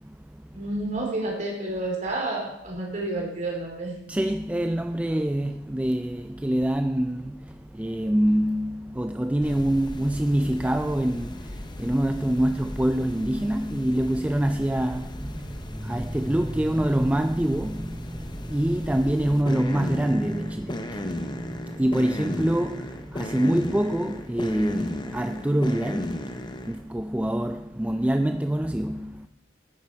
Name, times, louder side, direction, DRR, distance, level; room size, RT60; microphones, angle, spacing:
voice 1, 0.0-0.6 4.1-29.3, right 1 dB, 5° right, 0.3 m, -26 dB
voice 2, 0.5-4.0, right 2 dB, 40° right, 3.3 m, -30 dB
sound 1, 9.4-26.8, left 1 dB, 25° left, 0.8 m, -36 dB
12.5 x 9.6 x 4.4 m
head